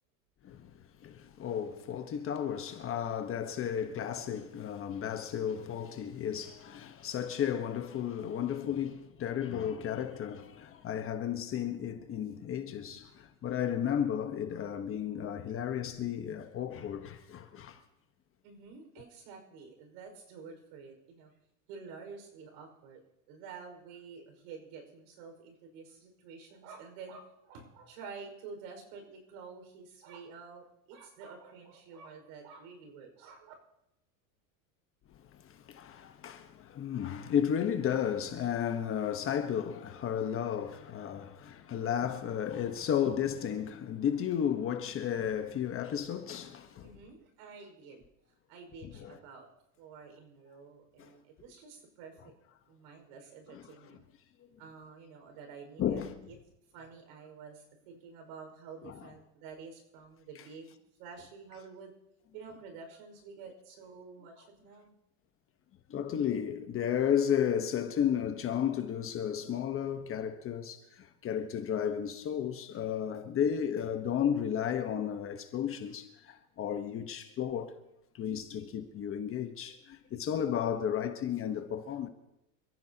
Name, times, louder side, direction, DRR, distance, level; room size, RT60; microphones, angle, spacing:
voice 1, 1.0-17.8 35.7-46.9 48.8-49.2 55.8-56.1 58.8-58.9 65.9-70.8 71.2-76.1 76.6-77.7 78.2-79.8 80.1-82.1, left 9 dB, 30° left, 1.2 m, -33 dB
voice 2, 18.4-21.3 21.7-23.0 23.3-33.5 46.8-48.1 48.5-49.5 49.8-52.3 52.7-54.0 54.6-56.4 56.7-60.7 61.0-61.9 62.3-64.9, right 5 dB, 60° right, 5.5 m, -49 dB
27.5 x 15.0 x 2.9 m
supercardioid pair, 135°, 43 cm